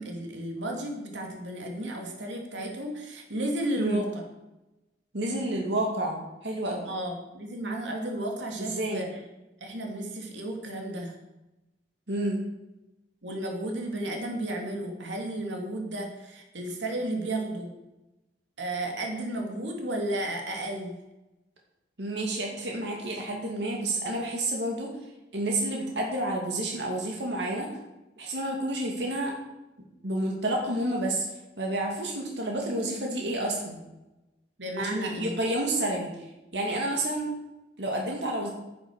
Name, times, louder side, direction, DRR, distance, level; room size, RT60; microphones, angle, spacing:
voice 1, 0.0-4.2 6.9-9.2 9.6-11.1 13.2-17.7 18.6-21.0 34.6-35.4, right 1 dB, 90° right, 1 dB, 2.6 m, -33 dB
voice 2, 5.1-6.8 8.7-9.0 12.1-12.4 22.0-24.9 25.3-27.7 28.2-29.3 30.0-31.2 31.6-33.8 34.8-36.3 36.5-37.3 37.8-38.5, right 1 dB, 70° right, 0 dB, 2.4 m, -30 dB
11.0 x 10.0 x 6.4 m, 1.0 s
head